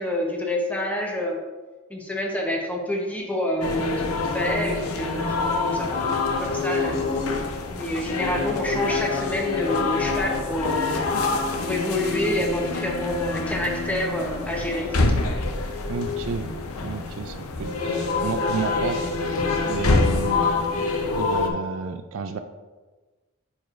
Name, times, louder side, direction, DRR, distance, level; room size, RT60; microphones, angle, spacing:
voice 1, 0.0-1.4 1.9-7.1 7.8-11.0 11.6-15.0, equal, 5° left, -1 dB, 0.9 m, -28 dB
sound 1, 3.6-21.5, left 3 dB, 75° left, 0.7 m, -26 dB
voice 2, 15.9-16.5 16.8-20.5 21.1-22.4, right 5 dB, 60° right, 8 dB, 0.4 m, -32 dB
8.9 x 4.8 x 2.5 m, 1.3 s
head